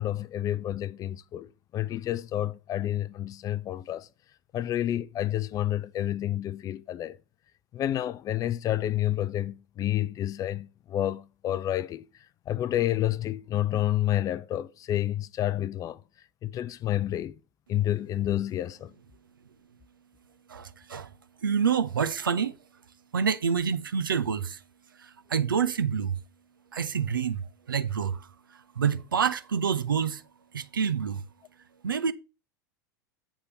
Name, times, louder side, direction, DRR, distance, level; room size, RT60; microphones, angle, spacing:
voice 1, 0.0-4.1 4.5-7.2 7.7-16.0 16.4-17.4 17.7-18.9, left 12 dB, 30° left, 0.4 m, -29 dB
voice 2, 20.5-21.1 21.4-22.6 23.1-24.6 25.0-26.2 26.7-28.3 28.8-30.2 30.5-31.2 31.8-32.1, right 7 dB, 80° right, 0.6 m, -27 dB
8.1 x 3.6 x 6.6 m
figure-of-eight pair, 85°, 11 cm